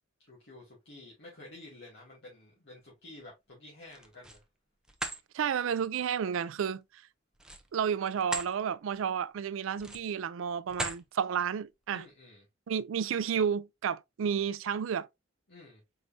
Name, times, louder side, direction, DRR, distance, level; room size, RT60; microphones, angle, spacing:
voice 1, 0.2-4.4 11.9-12.5 15.5-15.8, left 2 dB, 60° left, 1.9 m, -51 dB
sound 1, 3.8-4.4 4.8-5.2 7.3-8.5 9.0-9.2 9.7-10.2 10.7-11.0, right 2 dB, 5° right, 0.6 m, -38 dB
voice 2, 5.3-6.8 7.7-12.0 12.7-15.1, right 7 dB, 70° right, 0.4 m, -31 dB
4.7 x 4.0 x 2.7 m
head